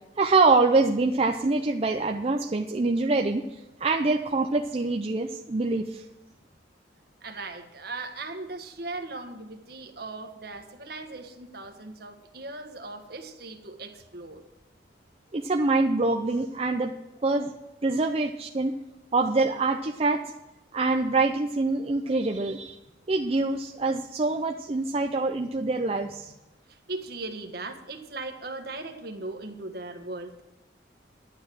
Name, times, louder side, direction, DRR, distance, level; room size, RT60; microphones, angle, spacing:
voice 1, 0.2-6.1 15.3-16.9 17.2-17.6 17.8-18.7 19.1-20.2 20.7-22.8 23.1-26.3, right 3 dB, 35° right, 4 dB, 0.5 m, -25 dB
voice 2, 7.2-14.4 26.7-30.4, right 2 dB, 55° right, 5 dB, 1.5 m, -38 dB
11.5 x 8.9 x 6.3 m, 1.0 s
head